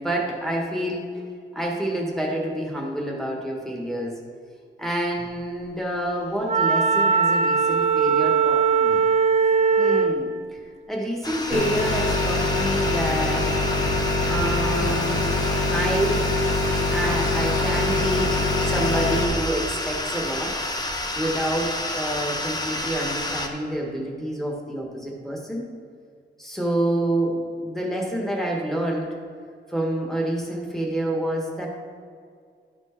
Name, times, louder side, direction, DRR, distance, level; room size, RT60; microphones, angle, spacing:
voice 1, 0.0-1.2 1.5-4.2 4.8-9.0 9.8-10.6 10.9-13.7 14.3-15.4 15.7-16.4 16.9-18.3 18.6-20.5 21.1-25.6 26.4-29.1 29.7-31.7, right 1 dB, ahead, -2 dB, 1.4 m, -28 dB
Wind instrument woodwind instrument, 6.4-10.2, right 5 dB, 35° right, 0.6 m, -20 dB
sound 1, 11.2-23.5, left 1 dB, 20° left, 0.8 m, -30 dB
sound 2, 11.5-19.2, left 2 dB, 80° left, 1.1 m, -24 dB
12.0 x 4.5 x 4.4 m, 2.2 s
wide cardioid pair, 130°, 20 cm